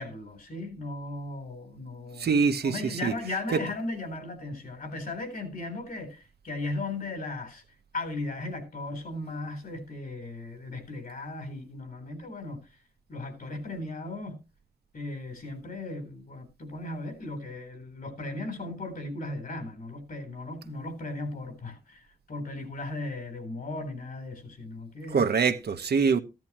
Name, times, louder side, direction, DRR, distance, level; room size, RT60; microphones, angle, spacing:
voice 1, 0.0-2.3 2.6-7.6 7.9-12.6 13.1-14.4 14.9-22.0 22.3-25.3, left 2 dB, 60° left, 3.8 m, -37 dB
voice 2, 2.2-3.1 3.5-3.6 25.1-26.2, right 5 dB, 85° right, 1.1 m, -24 dB
15.0 x 10.5 x 3.0 m
wide cardioid pair, 150°, 16 cm